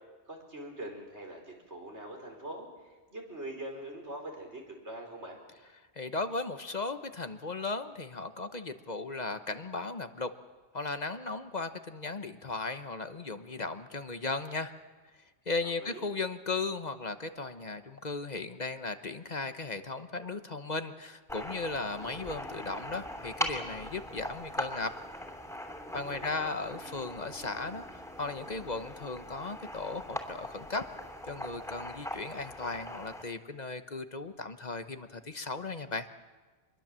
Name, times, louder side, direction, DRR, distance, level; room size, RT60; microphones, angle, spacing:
voice 1, 0.3-5.4 15.6-16.0 26.1-26.5, right 1 dB, 85° right, 2 dB, 4.9 m, -43 dB
voice 2, 6.0-10.3 10.7-14.7 15.5-24.9 25.9-30.8 31.3-36.1, left 3 dB, 40° left, 9 dB, 1.1 m, -36 dB
sound 1, 21.3-33.2, equal, ahead, 2.9 m, -41 dB
25.5 x 22.0 x 7.5 m, 1.4 s
omnidirectional pair, 1.1 m